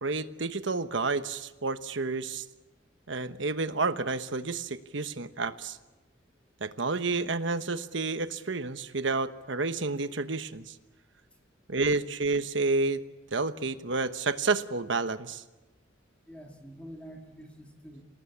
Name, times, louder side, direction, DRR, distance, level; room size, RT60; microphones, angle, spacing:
voice 1, 0.0-2.4 3.1-5.8 6.6-10.7 11.7-13.0 13.3-15.4, right 3 dB, 70° right, 10 dB, 1.2 m, -30 dB
voice 2, 16.1-18.0, equal, 5° left, 1 dB, 2.6 m, -47 dB
26.5 x 18.5 x 8.6 m, 1.1 s
head